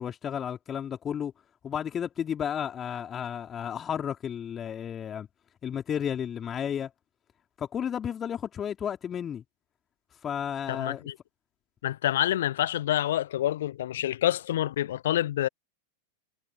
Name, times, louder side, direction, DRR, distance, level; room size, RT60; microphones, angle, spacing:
voice 1, 0.0-1.3 1.6-5.3 5.6-6.9 7.6-9.4 10.2-11.1, left 8 dB, 25° left, 3.5 m, -32 dB
voice 2, 10.7-11.1 11.8-15.5, left 12 dB, 60° left, 0.8 m, -27 dB
figure-of-eight pair, 90°, 0 cm